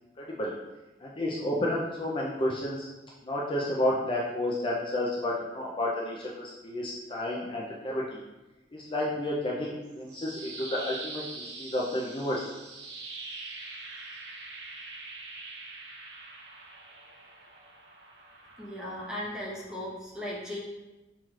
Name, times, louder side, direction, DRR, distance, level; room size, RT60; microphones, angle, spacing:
voice 1, 0.2-0.5 1.0-2.9 3.2-8.2 8.7-12.5, left 1 dB, 30° left, -4 dB, 0.4 m, -31 dB
sound 1, 9.8-19.9, right 3 dB, 65° right, 0.7 m, -44 dB
voice 2, 18.6-20.6, left 1 dB, 5° right, -5 dB, 0.9 m, -37 dB
5.8 x 3.1 x 2.4 m, 1.1 s
head